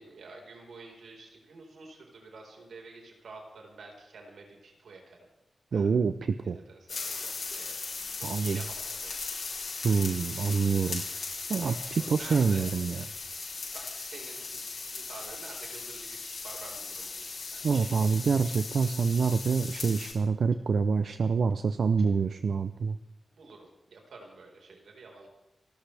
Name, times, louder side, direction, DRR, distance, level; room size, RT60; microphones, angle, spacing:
voice 1, 0.0-5.3 5.7-5.9 6.4-7.9 8.2-9.2 11.5-12.7 13.7-17.2 17.5-17.9 23.3-25.3, right 3 dB, 85° right, 0 dB, 4.6 m, -49 dB
voice 2, 5.7-6.6 8.2-8.6 9.8-11.0 11.5-13.0 17.6-23.0, right 5 dB, 55° right, 10 dB, 0.6 m, -26 dB
sound 1, 6.9-20.1, left 4 dB, 55° left, 6.5 m, -38 dB
29.0 x 14.5 x 3.4 m, 0.86 s
wide cardioid pair, 180°, 0 cm